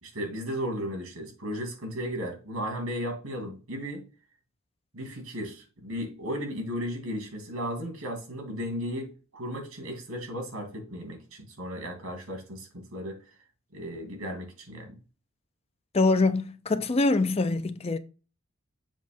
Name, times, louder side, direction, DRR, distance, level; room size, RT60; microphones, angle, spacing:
voice 1, 0.0-4.1 4.9-13.2 13.7-15.0, equal, 90° right, 2.7 m, -35 dB
voice 2, 15.9-18.0, left 3 dB, 30° left, 0.5 m, -24 dB
7.3 x 3.1 x 5.1 m
head